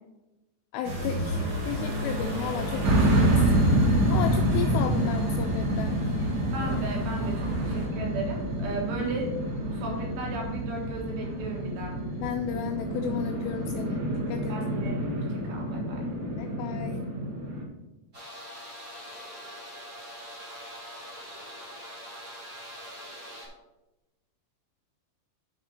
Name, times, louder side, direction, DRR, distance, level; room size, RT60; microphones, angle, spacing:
voice 1, 0.7-6.0 12.2-14.6 16.4-17.0, left 8 dB, 85° left, 6 dB, 2.4 m, -34 dB
sound 1, 0.8-7.9, equal, 45° right, 1.6 m, -33 dB
sound 2, 2.8-17.6, right 1 dB, 80° right, 1.0 m, -27 dB
voice 2, 6.5-9.3 9.6-12.0 14.5-16.1, right 3 dB, 65° right, -1 dB, 3.0 m, -35 dB
sound 3, 18.1-23.5, equal, 20° right, 1.9 m, -43 dB
6.5 x 5.5 x 6.2 m, 0.99 s
omnidirectional pair, 5.3 m